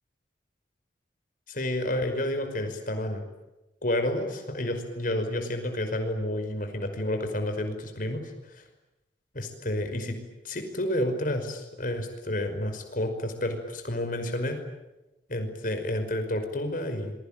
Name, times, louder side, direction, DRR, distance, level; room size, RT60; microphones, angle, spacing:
voice 1, 1.5-3.2 3.8-8.6 9.3-10.2 10.4-14.6 15.3-17.1, left 1 dB, 50° left, 6 dB, 5.4 m, -30 dB
28.0 x 23.0 x 9.0 m, 1.0 s
head